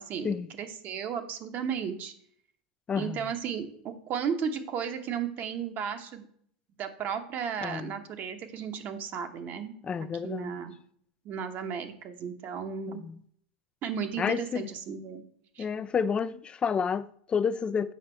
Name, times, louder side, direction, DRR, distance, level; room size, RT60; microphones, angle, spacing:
voice 1, 0.0-2.1 2.9-6.3 6.8-9.7 10.2-10.8 11.2-13.0 13.8-15.2 15.5-15.7, right 7 dB, 45° right, 1.0 m, -34 dB
voice 2, 7.6-7.9 9.8-10.6 13.0-13.2 14.2-14.7 15.6-17.9, left 6 dB, 25° left, 0.4 m, -30 dB
7.4 x 5.1 x 4.4 m
hypercardioid pair, 110°, 4 cm